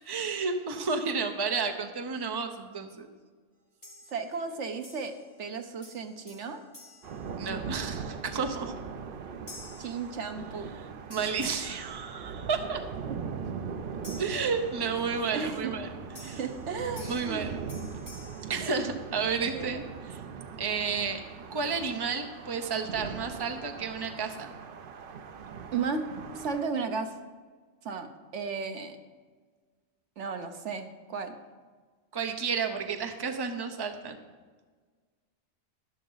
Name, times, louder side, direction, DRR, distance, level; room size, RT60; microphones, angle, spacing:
voice 1, 0.1-3.1 7.4-8.7 11.1-12.8 14.2-15.9 16.2-16.4 17.0-17.6 18.5-20.2 20.6-21.2 21.5-24.5 32.1-34.2, right 5 dB, 25° right, 5 dB, 0.8 m, -31 dB
sound 1, 3.8-4.5 4.8-5.5 5.8-8.0 8.5-8.8 9.5-10.8 11.1-12.7 14.0-15.2 16.1-19.4, left 2 dB, 25° left, 3.2 m, -51 dB
voice 2, 4.1-6.6 9.8-10.7 11.2-11.3 13.1-13.2 15.3-15.7 16.2-17.4 19.4-19.8 25.7-26.0 26.3-27.1 27.8-29.0 30.2-31.4, right 5 dB, 70° right, 7 dB, 1.2 m, -34 dB
sound 2, 7.0-26.6, right 6 dB, 55° right, 0.7 m, -40 dB
12.0 x 11.5 x 4.0 m, 1.5 s
omnidirectional pair, 1.3 m